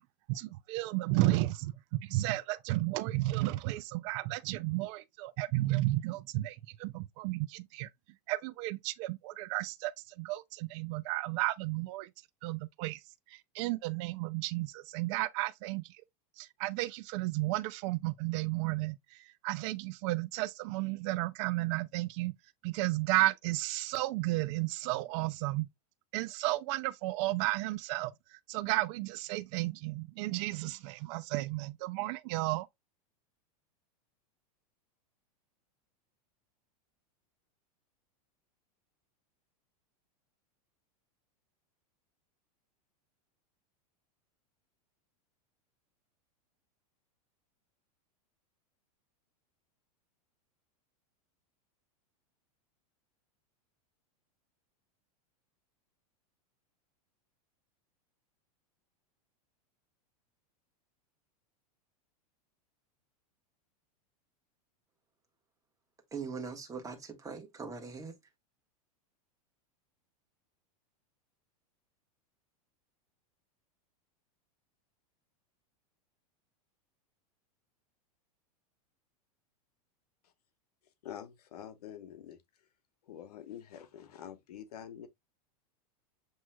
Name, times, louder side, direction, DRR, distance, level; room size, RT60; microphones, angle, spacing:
voice 1, 0.3-7.9 8.3-12.1 12.4-13.0 13.3-15.8 16.4-22.3 22.6-25.7 26.1-32.7, right 19 dB, 50° right, 0.4 m, -33 dB
voice 2, 66.1-68.1, right 5 dB, 15° right, 1.3 m, -41 dB
voice 3, 81.0-82.4 83.0-85.1, left 10 dB, 80° left, 1.0 m, -46 dB
7.3 x 3.0 x 2.2 m
hypercardioid pair, 120°, 20 cm